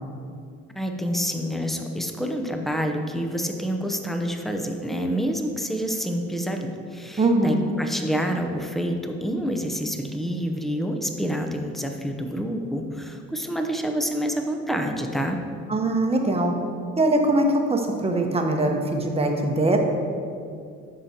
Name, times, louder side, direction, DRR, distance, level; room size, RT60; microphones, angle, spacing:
voice 1, 0.8-15.4, equal, ahead, 4 dB, 0.7 m, -28 dB
voice 2, 7.2-7.6 15.7-16.5 17.0-19.8, right 2 dB, 20° right, 2 dB, 0.9 m, -22 dB
13.0 x 5.0 x 2.8 m, 2.3 s
cardioid pair, 100°, 29 cm